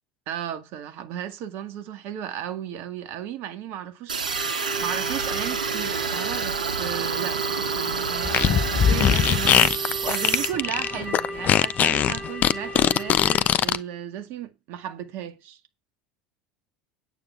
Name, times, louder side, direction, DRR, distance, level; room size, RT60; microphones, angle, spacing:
voice 1, 0.3-4.5 4.8-15.6, right 10 dB, 60° right, 2.0 m, -35 dB
sound 1, 4.1-10.5, right 5 dB, 90° right, 3.9 m, -28 dB
sound 2, 4.2-13.4, equal, 5° right, 4.2 m, -36 dB
Fart, 8.2-13.8, left 9 dB, 40° left, 0.9 m, -20 dB
9.2 x 8.5 x 5.6 m
hypercardioid pair, 75°, 4 cm